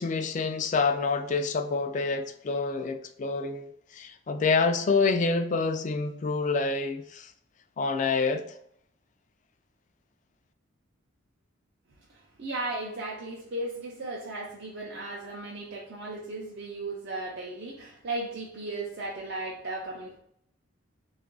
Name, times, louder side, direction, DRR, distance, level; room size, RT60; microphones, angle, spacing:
voice 1, 0.0-7.3 7.8-8.5, left 4 dB, 35° left, 0.3 m, -27 dB
voice 2, 12.1-20.2, right 2 dB, 55° right, 0.5 m, -36 dB
3.6 x 2.4 x 3.7 m
head